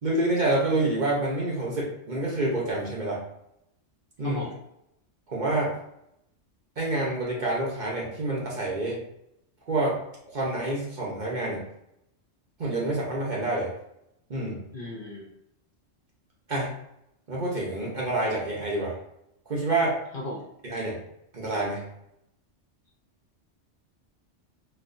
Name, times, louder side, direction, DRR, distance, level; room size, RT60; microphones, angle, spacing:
voice 1, 0.0-3.2 4.2-4.4 5.3-5.7 6.8-9.0 9.7-10.0 10.3-11.7 12.6-13.7 14.3-14.7 16.5-16.7 17.3-18.9 19.5-20.0 20.6-21.0 21.3-21.9, right 2 dB, 45° right, -4 dB, 0.9 m, -27 dB
voice 2, 4.2-4.5 14.7-15.3 20.1-20.5, left 2 dB, 55° left, -2 dB, 0.7 m, -35 dB
4.4 x 2.2 x 2.6 m, 0.77 s
omnidirectional pair, 1.2 m